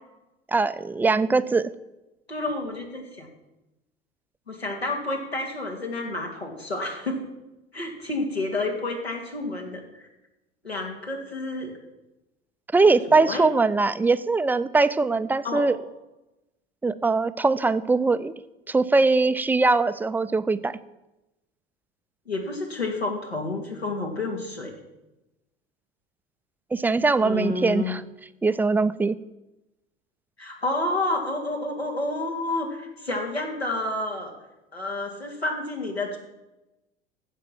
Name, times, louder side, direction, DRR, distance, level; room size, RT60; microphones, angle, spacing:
voice 1, 0.5-1.7 12.7-15.8 16.8-18.3 18.7-20.8 26.7-28.0 28.4-29.1, right 3 dB, 5° right, 13 dB, 0.4 m, -21 dB
voice 2, 2.3-3.3 4.5-7.2 7.7-10.1 10.6-11.7 12.8-13.5 15.4-15.7 22.3-24.7 27.2-27.9 30.4-34.3 34.7-36.2, left 2 dB, 90° left, 1 dB, 2.4 m, -30 dB
15.0 x 5.9 x 7.3 m, 0.98 s
figure-of-eight pair, 75°, 30 cm